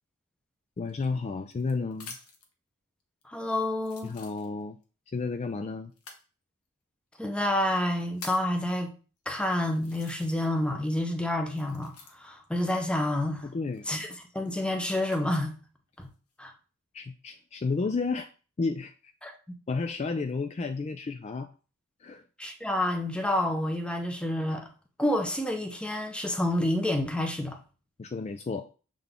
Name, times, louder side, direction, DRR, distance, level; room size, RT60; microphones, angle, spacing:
voice 1, 0.8-2.2 4.0-4.8 5.1-5.9 13.4-13.8 16.9-18.3 18.6-19.1 19.7-21.5 22.0-22.2 28.0-28.7, left 4 dB, 30° left, 0.3 m, -32 dB
sound 1, 0.9-2.5 3.2-3.3 3.8-4.8 5.9-6.3 7.1-7.2 7.8-8.6 9.2-9.3 9.8-10.7 10.9-12.5 13.7-15.2 15.9-16.4, left 4 dB, 75° left, 1.2 m, -48 dB
voice 2, 3.3-4.1 7.2-8.9 9.3-13.5 13.9-14.1 14.3-15.5 16.0-16.1 16.4-16.5 19.2-19.3 22.4-24.7 25.0-27.6, left 1 dB, 5° left, 0.7 m, -29 dB
6.8 x 3.8 x 3.6 m
head